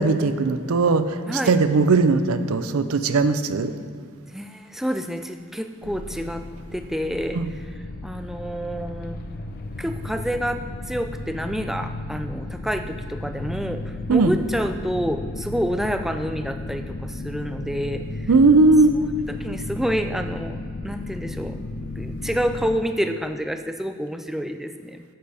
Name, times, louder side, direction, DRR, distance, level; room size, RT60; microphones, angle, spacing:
voice 1, 0.0-3.7 7.3-7.5 14.1-14.3 18.3-18.9, right 3 dB, 85° right, 11 dB, 0.5 m, -18 dB
voice 2, 4.3-6.4 6.7-7.4 8.0-9.2 9.8-10.6 10.9-18.3 18.9-19.1 19.4-21.6 22.0-25.0, equal, ahead, 7 dB, 0.3 m, -28 dB
sound 1, 5.8-22.8, left 2 dB, 45° left, 0.6 m, -34 dB
10.5 x 8.8 x 3.5 m, 2.2 s
head